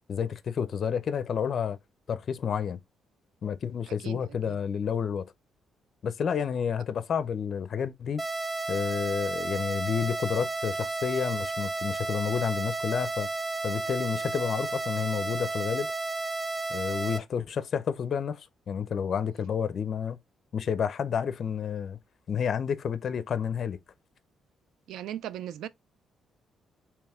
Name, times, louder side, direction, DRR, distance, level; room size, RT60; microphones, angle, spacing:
voice 1, 0.1-1.8 2.1-2.8 3.4-5.2 6.0-8.2 8.7-13.3 13.6-15.9 16.7-20.2 20.5-22.0 22.3-23.8, left 7 dB, 55° left, 0.5 m, -30 dB
sound 1, 8.2-17.2, right 3 dB, 15° right, 0.6 m, -32 dB
voice 2, 24.9-25.7, right 11 dB, 80° right, 0.3 m, -37 dB
3.3 x 3.0 x 3.4 m
cardioid pair, 90°, 0 cm